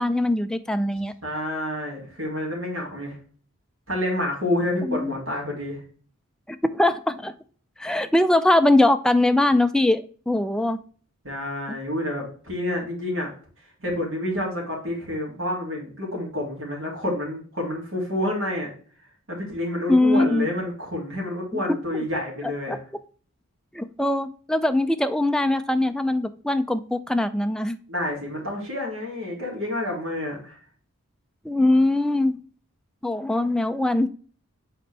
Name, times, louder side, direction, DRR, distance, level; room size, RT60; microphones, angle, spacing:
voice 1, 0.0-1.1 4.9-5.1 6.5-7.3 7.8-10.8 19.9-20.5 21.5-22.0 22.7-22.8 23.7-27.8 31.4-32.4 33.0-34.1, left 1 dB, 5° left, 9 dB, 0.3 m, -22 dB
voice 2, 1.2-3.2 3.9-5.8 11.2-13.3 13.8-18.7 19.3-22.8 27.9-30.6, left 1 dB, 65° right, -2 dB, 2.8 m, -28 dB
6.6 x 4.3 x 3.3 m, 0.44 s
head